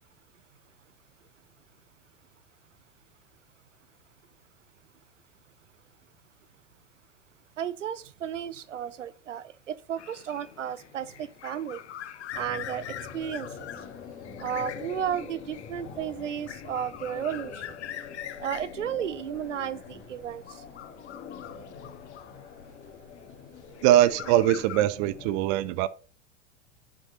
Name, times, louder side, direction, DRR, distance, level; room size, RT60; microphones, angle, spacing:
voice 1, 7.6-11.8 12.3-12.8 13.1-13.7 14.4-17.7 18.4-20.4, right 9 dB, 65° right, 0.8 m, -33 dB
sound 1, 10.0-22.9 23.6-24.8, left 11 dB, 60° left, 1.0 m, -43 dB
sound 2, 12.3-25.4, left 6 dB, 30° left, 2.9 m, -44 dB
voice 2, 23.8-25.9, right 13 dB, 30° right, 0.5 m, -22 dB
11.0 x 6.5 x 4.2 m
figure-of-eight pair, 90°, 39 cm